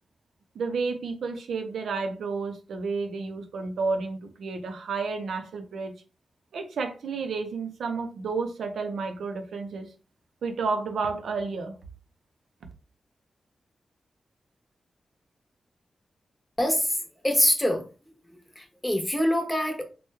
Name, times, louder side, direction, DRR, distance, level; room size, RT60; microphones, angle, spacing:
voice 1, 0.5-5.9 6.5-9.9 10.4-11.8, right 4 dB, 85° right, 0.5 m, -31 dB
voice 2, 16.6-17.0 17.2-17.8 18.6-19.8, equal, 10° left, 1.0 m, -24 dB
3.0 x 2.2 x 3.3 m
cardioid pair, 60°, 0 cm